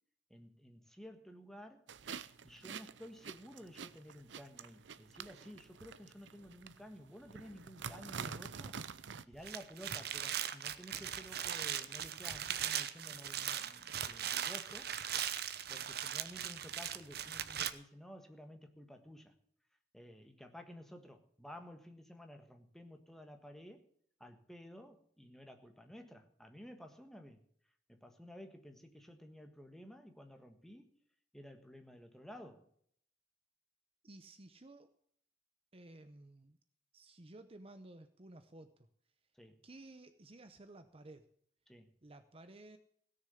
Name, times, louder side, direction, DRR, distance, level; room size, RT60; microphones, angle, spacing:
voice 1, 0.3-1.9 2.4-8.8 9.3-15.0 15.7-19.4 19.9-23.8 24.2-27.4 27.9-30.9 31.3-32.7 39.4-39.5 41.7-41.9, equal, ahead, 5 dB, 1.5 m, -53 dB
sound 1, 1.9-9.2, right 6 dB, 85° right, 0.7 m, -48 dB
sound 2, 9.3-17.7, right 10 dB, 60° right, 0.9 m, -39 dB
voice 2, 34.0-34.9 35.7-36.6 36.9-38.7 39.6-41.3 42.0-42.8, right 2 dB, 30° right, 10 dB, 0.8 m, -55 dB
17.0 x 6.6 x 8.3 m, 0.63 s
head